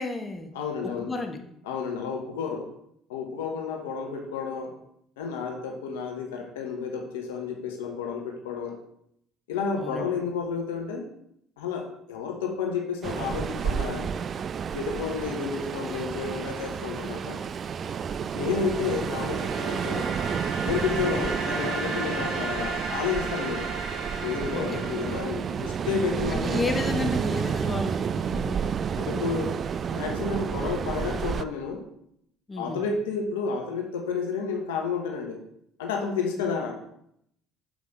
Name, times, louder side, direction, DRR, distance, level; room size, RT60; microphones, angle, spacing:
voice 1, 0.0-0.5 1.0-1.4 9.7-10.1 21.0-21.3 24.5-24.8 26.3-28.6 32.5-32.8, left 3 dB, 25° left, 4 dB, 1.3 m, -32 dB
voice 2, 0.5-1.1 1.7-2.7 3.1-4.8 5.2-8.8 9.5-11.1 11.6-14.1 14.7-17.4 18.3-20.1 20.6-23.7 24.2-26.6 28.9-29.6 29.9-31.8 32.6-35.4 35.8-36.7, left 5 dB, 80° left, 2 dB, 1.0 m, -31 dB
Ocean, 13.0-31.4, right 7 dB, 45° right, 0.3 m, -30 dB
sound 1, 18.2-25.9, right 3 dB, 65° right, 2.0 m, -35 dB
7.3 x 5.2 x 3.9 m, 0.73 s
hypercardioid pair, 60°, 0 cm